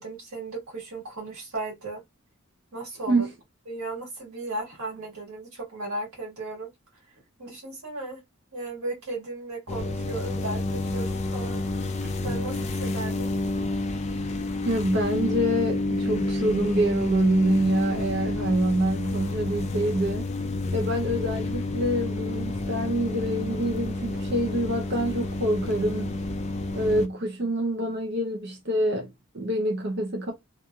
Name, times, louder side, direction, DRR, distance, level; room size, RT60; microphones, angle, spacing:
voice 1, 0.0-2.0 2.7-3.3 3.7-6.7 7.4-8.2 8.5-11.6 12.2-13.3, right 2 dB, 85° right, 1.6 m, -35 dB
sound 1, 9.7-27.1, left 2 dB, 30° left, 0.3 m, -29 dB
voice 2, 14.6-20.3 20.7-26.2 26.7-30.3, right 1 dB, 50° right, 0.6 m, -26 dB
2.9 x 2.5 x 2.3 m
head